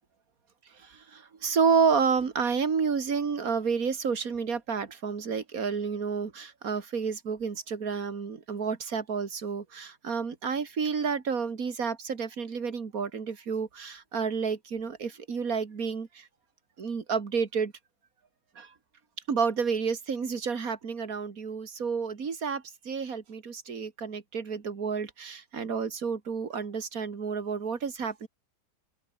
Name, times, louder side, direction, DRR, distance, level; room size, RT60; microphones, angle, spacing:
voice 1, 0.7-16.3 16.8-17.7 18.6-18.7 19.3-28.3, right 5 dB, 60° right, 2.6 m, -30 dB
omnidirectional pair, 1.7 m